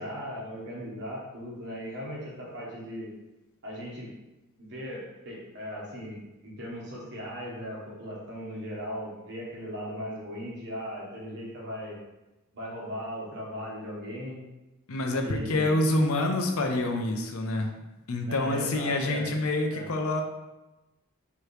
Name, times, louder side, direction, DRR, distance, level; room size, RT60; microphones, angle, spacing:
voice 1, 0.0-3.1 3.6-4.1 4.6-12.0 12.5-14.4 15.2-15.9 18.2-19.3 19.7-19.9, equal, 50° right, -4 dB, 1.2 m, -38 dB
voice 2, 14.9-17.8 18.1-20.2, left 2 dB, 70° left, 3 dB, 0.6 m, -27 dB
4.8 x 2.9 x 3.2 m, 1.0 s
head